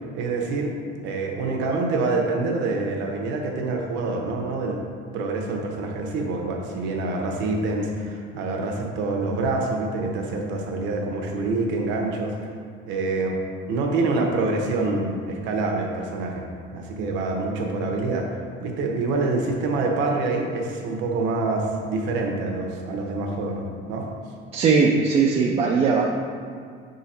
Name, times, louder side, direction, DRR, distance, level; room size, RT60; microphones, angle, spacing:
voice 1, 0.1-0.7 1.0-4.8 5.1-12.5 12.9-13.4 13.7-16.4 16.7-18.3 18.6-24.0, right 3 dB, 65° right, 1 dB, 0.9 m, -26 dB
voice 2, 24.5-26.1, right 5 dB, 30° right, -2 dB, 0.4 m, -19 dB
6.2 x 3.9 x 4.3 m, 2.2 s
cardioid pair, 175°, 21 cm